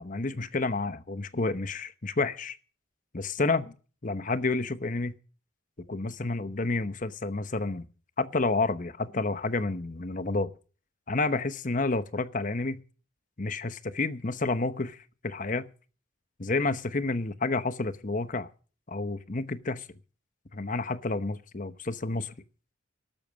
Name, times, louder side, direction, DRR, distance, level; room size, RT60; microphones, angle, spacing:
voice 1, 0.0-2.6 3.1-3.6 4.0-5.1 5.9-7.9 8.2-10.5 11.1-12.8 13.4-15.0 15.2-15.7 16.4-18.5 18.9-19.9 20.5-22.3, left 3 dB, 40° left, 1.0 m, -30 dB
12.5 x 12.5 x 6.2 m
head